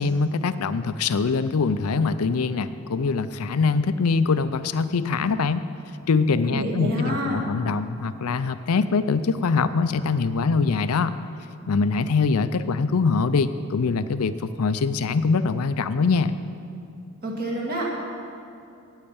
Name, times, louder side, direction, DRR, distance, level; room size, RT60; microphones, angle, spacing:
voice 1, 0.0-5.6 6.1-11.2 11.7-16.3, left 4 dB, 85° left, 12 dB, 0.5 m, -23 dB
voice 2, 6.3-7.4 17.2-17.9, right 1 dB, 40° right, -2 dB, 2.2 m, -28 dB
9.1 x 8.6 x 8.6 m, 2.5 s
head